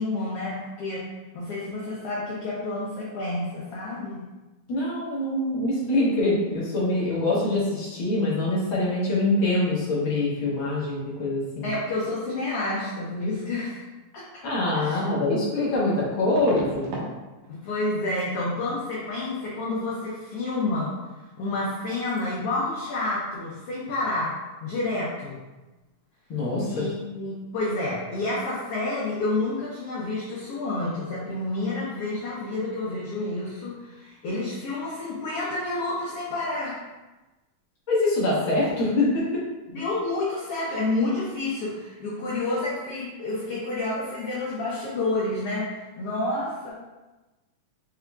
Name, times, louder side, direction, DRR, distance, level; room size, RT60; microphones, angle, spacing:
voice 1, 0.0-4.2 11.6-13.8 14.1-14.2 14.7-15.0 17.5-20.9 21.4-25.4 26.6-36.8 39.7-46.7, left 2 dB, 85° left, -7 dB, 1.3 m, -29 dB
voice 2, 4.7-11.7 14.4-16.9 26.3-26.8 37.9-39.4, left 2 dB, 65° left, -7 dB, 1.3 m, -24 dB
sound 1, 16.4-17.1 17.4-17.8 18.1-18.3 21.2-21.3 21.6-21.8 22.1-22.2, right 2 dB, 85° right, 2.4 m, -37 dB
5.5 x 3.6 x 2.3 m, 1.1 s
omnidirectional pair, 3.8 m